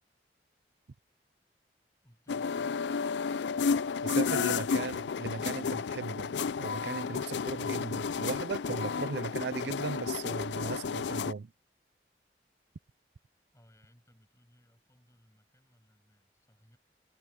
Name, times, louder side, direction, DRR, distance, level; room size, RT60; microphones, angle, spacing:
voice 1, 2.0-2.9 13.5-16.8, equal, 15° left, 7.5 m, -63 dB
sound 1, 2.3-11.3, left 5 dB, 90° left, 0.4 m, -32 dB
voice 2, 4.0-6.3 6.6-11.5, right 4 dB, 75° right, 0.5 m, -37 dB
head